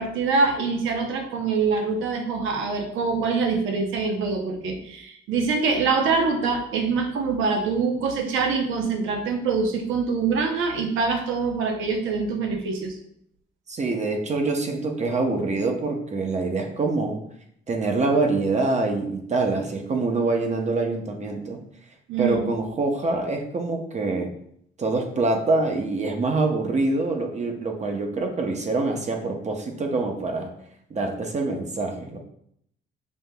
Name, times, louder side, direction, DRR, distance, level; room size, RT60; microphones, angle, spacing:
voice 1, 0.0-13.0 22.1-22.5, right 4 dB, 90° right, 4 dB, 0.7 m, -24 dB
voice 2, 13.7-17.2 17.7-21.6 22.2-24.3 24.8-30.5 30.9-32.2, right 3 dB, 35° right, 3 dB, 0.7 m, -25 dB
5.4 x 3.0 x 2.2 m, 0.70 s
cardioid pair, 90°, 20 cm